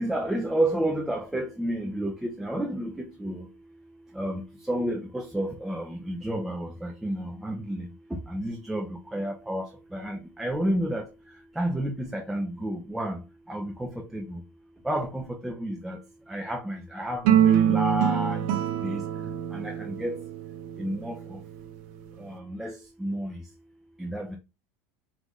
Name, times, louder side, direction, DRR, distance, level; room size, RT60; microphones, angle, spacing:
voice 1, 0.0-3.5 4.2-4.4 4.7-7.8 8.3-9.7 9.9-11.0 11.6-13.2 13.5-14.4 14.9-16.0 16.3-18.4 18.8-19.0 19.5-20.1 20.8-21.1 22.3-23.4 24.0-24.4, right 1 dB, 5° right, 0.5 m, -30 dB
sound 1, 17.2-21.7, right 9 dB, 70° right, 0.8 m, -25 dB
5.1 x 2.5 x 3.1 m
supercardioid pair, 145°, 7 cm